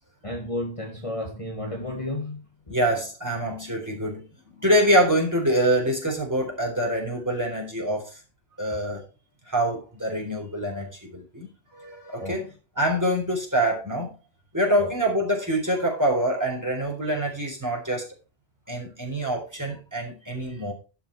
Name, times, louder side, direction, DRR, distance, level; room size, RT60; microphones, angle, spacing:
voice 1, 0.2-2.4 12.2-12.4 14.8-14.9, left 1 dB, 30° left, 1.7 m, -32 dB
voice 2, 2.7-4.3 4.5-8.1 8.6-9.0 9.5-12.4 12.8-14.1 14.5-18.0 18.7-20.7, right 1 dB, 15° right, 3.9 m, -25 dB
12.0 x 5.7 x 4.7 m
omnidirectional pair, 1.1 m